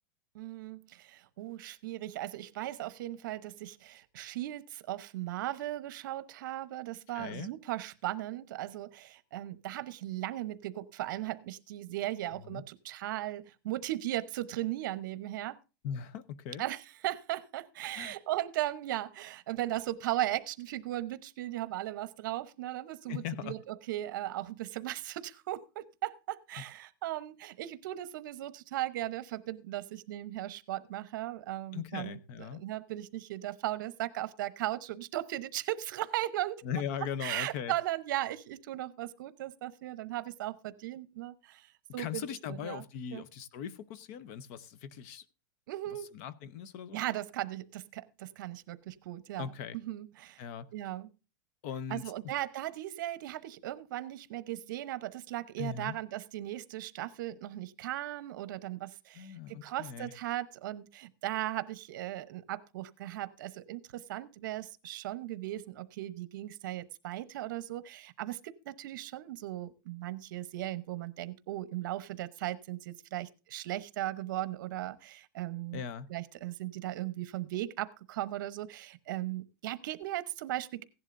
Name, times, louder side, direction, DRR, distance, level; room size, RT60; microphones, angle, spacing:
voice 1, 0.3-15.6 16.6-32.2 32.5-36.6 37.2-42.8 43.1-43.2 45.7-46.1 46.9-50.4 50.7-51.1 51.9-75.8 76.1-80.8, right 14 dB, 65° right, 0.9 m, -37 dB
voice 2, 7.1-7.5 12.4-12.6 15.8-16.6 18.0-18.1 23.1-23.5 26.6-26.7 31.7-32.6 36.6-37.7 42.0-45.2 46.1-47.0 49.4-49.8 50.4-50.7 51.6-52.0 55.6-56.0 59.2-60.1 75.7-76.1, left 8 dB, 40° left, 0.8 m, -39 dB
16.0 x 11.0 x 2.6 m
supercardioid pair, 165°, 12 cm